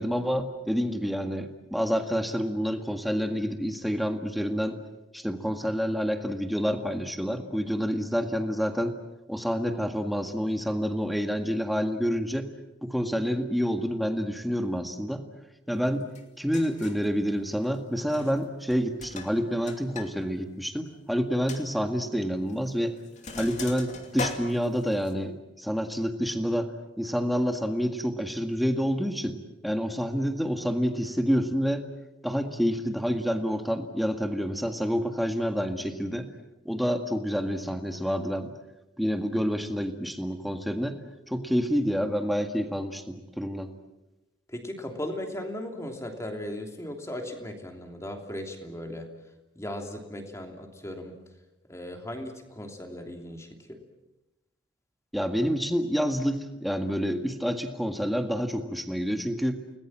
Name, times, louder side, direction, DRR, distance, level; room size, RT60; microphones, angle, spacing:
voice 1, 0.0-4.8 5.1-9.0 9.3-12.5 12.8-15.2 15.7-16.1 16.4-22.9 23.4-26.7 27.0-29.4 29.6-31.8 32.2-36.3 36.7-38.5 39.0-41.0 41.3-43.7 55.1-59.6, equal, ahead, 5 dB, 1.8 m, -28 dB
Sink (filling or washing), 16.1-16.2 16.5-17.1 18.0-18.4 18.7-20.1 20.4-20.5 20.9-21.0 21.5-21.6 22.5-22.7 23.0-25.1, left 3 dB, 40° left, 2.7 m, -38 dB
voice 2, 44.5-49.1 49.5-51.2 51.7-53.8, left 1 dB, 15° left, 3 dB, 3.0 m, -37 dB
30.0 x 20.0 x 7.5 m, 1.0 s
head